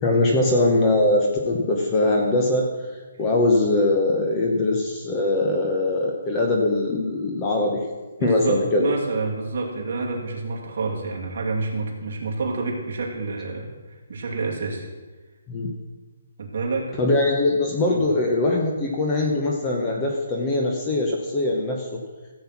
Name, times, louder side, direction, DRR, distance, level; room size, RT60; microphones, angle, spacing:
voice 1, 0.0-2.7 3.2-7.8 8.2-8.9 15.5-15.7 17.0-22.0, left 2 dB, 15° left, 0 dB, 0.9 m, -22 dB
voice 2, 8.2-13.7 14.1-14.9 16.4-16.9 17.9-18.0, right 3 dB, 40° right, -2 dB, 2.5 m, -28 dB
14.5 x 7.8 x 5.8 m, 1.3 s
hypercardioid pair, 180°, 0 cm